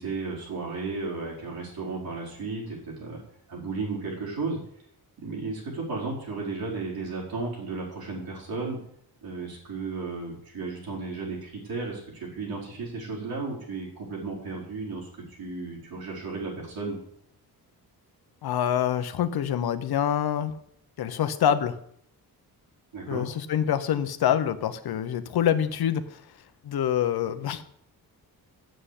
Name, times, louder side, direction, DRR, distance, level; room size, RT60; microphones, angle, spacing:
voice 1, 0.0-3.2 3.5-4.6 5.2-8.8 9.2-17.0 22.9-23.3, right 3 dB, 75° right, -4 dB, 4.6 m, -34 dB
voice 2, 18.4-20.5 21.0-21.7 23.1-26.2 26.6-27.6, left 9 dB, 85° left, 10 dB, 1.0 m, -26 dB
7.8 x 7.7 x 8.3 m, 0.68 s
wide cardioid pair, 155°, 36 cm